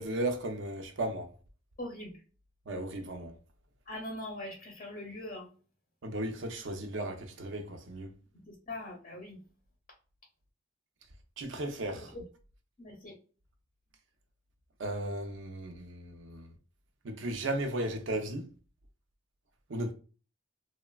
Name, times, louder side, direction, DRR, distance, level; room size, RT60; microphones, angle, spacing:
voice 1, 0.0-1.3 2.7-3.4 6.0-8.1 11.4-12.1 14.8-16.5 17.0-18.5 19.7-19.9, right 1 dB, 70° right, 0.5 m, -35 dB
voice 2, 1.8-2.1 3.9-5.5 8.5-9.4 12.8-13.1, left 1 dB, 40° left, 0.7 m, -41 dB
3.1 x 2.1 x 2.2 m
head